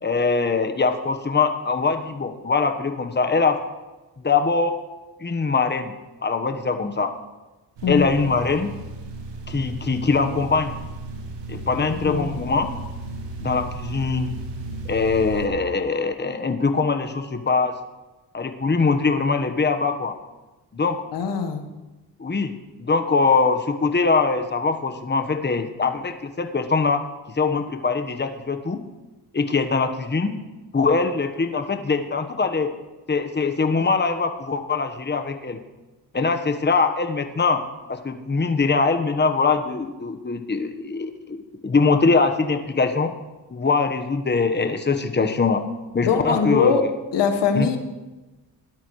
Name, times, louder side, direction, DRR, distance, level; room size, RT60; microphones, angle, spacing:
voice 1, 0.0-3.6 4.2-4.8 5.2-5.9 6.2-7.1 7.9-8.7 9.5-10.7 11.5-12.7 13.4-14.3 14.8-17.7 18.3-20.2 20.7-21.0 22.2-22.5 22.8-27.0 27.3-28.8 29.3-30.3 30.7-32.7 33.1-35.6 36.1-37.6 37.9-43.1 43.5-45.6 45.9-46.8 47.5-47.7, left 4 dB, 25° left, 7 dB, 1.2 m, -22 dB
sound 1, 7.8-15.5, right 3 dB, 90° right, 1.5 m, -35 dB
voice 2, 11.8-12.2 21.1-21.7 46.0-46.8 47.1-47.8, left 6 dB, 80° left, 7 dB, 1.4 m, -22 dB
17.5 x 12.0 x 3.2 m, 1.1 s
cardioid pair, 55°, 42 cm